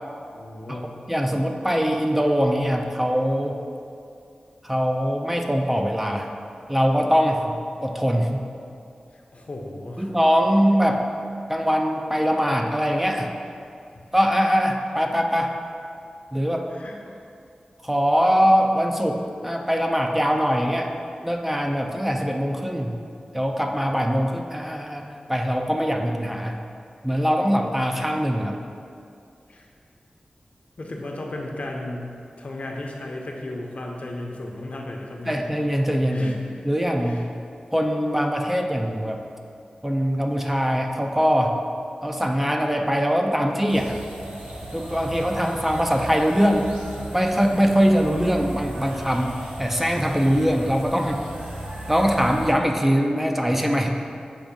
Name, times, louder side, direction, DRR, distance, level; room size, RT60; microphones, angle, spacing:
voice 1, 0.3-1.0 9.1-10.1 13.9-14.0 16.7-16.9 29.5-29.7 30.8-32.1 32.4-35.4 36.1-36.6 37.0-37.2 53.1-53.2, left 1 dB, 60° left, 0 dB, 0.7 m, -35 dB
voice 2, 1.1-3.6 4.6-6.3 6.7-7.6 7.8-8.5 10.0-11.0 11.5-13.3 14.1-15.5 16.3-16.7 17.8-20.9 21.2-22.9 23.3-25.0 25.3-26.6 27.0-28.6 35.3-36.4 36.6-37.2 37.7-39.2 39.8-41.6 42.0-44.0 44.7-46.7 47.1-49.3 49.6-51.2 51.9-54.0, equal, 10° right, 2 dB, 0.4 m, -22 dB
sound 1, 43.7-52.5, right 1 dB, 60° right, 1.2 m, -36 dB
7.2 x 2.6 x 5.1 m, 2.4 s
wide cardioid pair, 65°, 2 cm